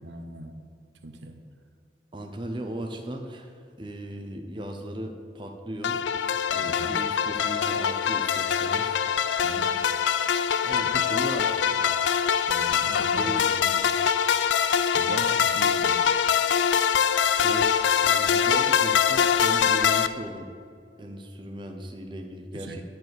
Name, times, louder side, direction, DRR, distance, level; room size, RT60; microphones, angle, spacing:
voice 1, 0.0-0.5 1.0-1.4 6.6-6.9 9.4-9.7 10.8-10.9 12.5-13.3 14.9-16.0 22.5-22.8, right 2 dB, 75° right, 7 dB, 0.8 m, -40 dB
voice 2, 2.1-3.5 3.8-6.0 6.5-9.0 10.6-12.0 12.7-14.0 17.4-20.6 21.0-22.8, right 1 dB, 25° right, 4 dB, 0.6 m, -37 dB
sound 1, 5.8-20.1, left 7 dB, 85° left, 0.4 m, -23 dB
10.0 x 4.7 x 7.9 m, 2.2 s
head